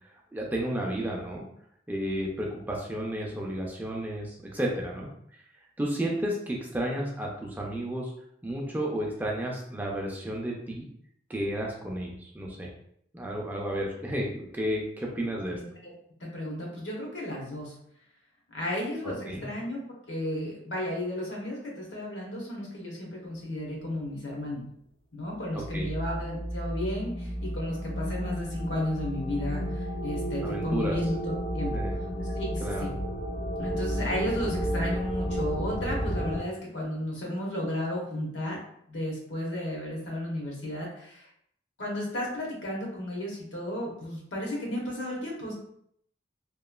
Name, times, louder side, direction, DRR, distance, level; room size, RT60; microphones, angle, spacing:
voice 1, 0.3-1.4 1.9-5.1 5.8-8.1 8.4-10.9 11.3-12.7 13.1-15.6 19.0-19.5 25.7-25.9 30.4-31.0 31.7-32.0 32.6-32.9, right 1 dB, 10° right, -2 dB, 0.4 m, -32 dB
voice 2, 15.5-15.9 16.2-17.7 18.5-24.6 25.1-31.2 31.5-31.7 32.3-32.9 33.6-38.6 38.9-41.3 41.8-45.5, left 1 dB, 75° left, -2 dB, 0.9 m, -33 dB
sound 1, 25.5-36.4, equal, 55° left, 0.7 m, -32 dB
2.9 x 2.2 x 2.3 m, 0.69 s
head